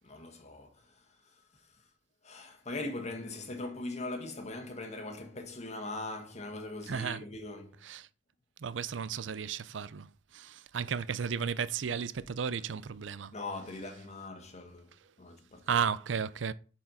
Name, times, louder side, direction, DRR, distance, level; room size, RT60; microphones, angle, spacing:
voice 1, 0.0-1.0 2.2-7.8 13.3-14.9 15.2-15.8, left 2 dB, 40° left, 1.5 m, -41 dB
voice 2, 6.9-7.2 7.8-8.1 8.6-10.1 10.3-13.3 15.7-16.5, right 7 dB, 85° right, 0.5 m, -33 dB
7.6 x 4.5 x 5.6 m
head